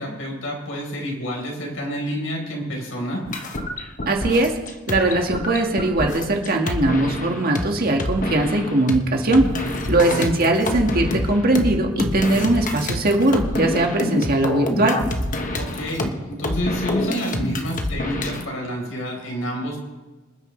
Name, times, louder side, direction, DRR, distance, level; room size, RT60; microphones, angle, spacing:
voice 1, 0.0-3.2 10.0-10.3 15.6-19.8, equal, 85° left, 0 dB, 4.4 m, -28 dB
sound 1, 3.3-7.7 8.0-9.0 9.3-18.5, left 1 dB, 40° left, 1.2 m, -27 dB
voice 2, 4.1-4.5 4.9-15.0, right 2 dB, 50° right, 2 dB, 1.9 m, -20 dB
26.5 x 9.5 x 3.3 m, 1.2 s
head